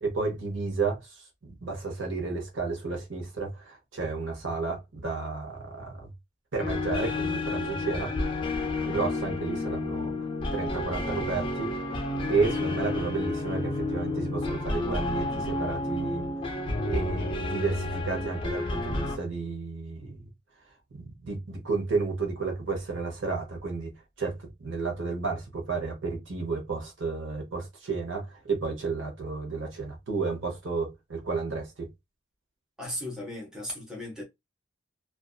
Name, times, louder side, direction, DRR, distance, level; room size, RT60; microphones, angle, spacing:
voice 1, 0.0-6.1 6.5-8.1 8.9-12.0 12.3-16.3 16.9-20.2 20.9-23.9 24.2-31.9, right 4 dB, 65° right, 0.9 m, -32 dB
sound 1, 6.6-19.2, left 2 dB, 25° left, 0.4 m, -31 dB
voice 2, 32.8-34.2, left 1 dB, 5° right, 0.8 m, -36 dB
2.5 x 2.3 x 2.3 m
head